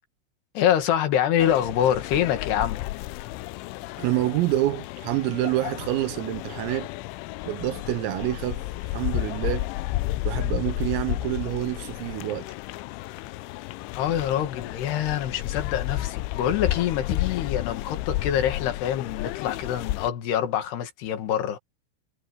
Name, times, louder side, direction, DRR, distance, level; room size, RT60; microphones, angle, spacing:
voice 1, 0.6-2.8 13.9-21.6, left 10 dB, 60° left, 3.7 m, -25 dB
sound 1, 1.4-20.1, left 17 dB, 85° left, 2.8 m, -32 dB
voice 2, 4.0-6.9 7.5-9.7 10.2-12.5, right 16 dB, 90° right, 3.9 m, -27 dB
omnidirectional pair, 5.8 m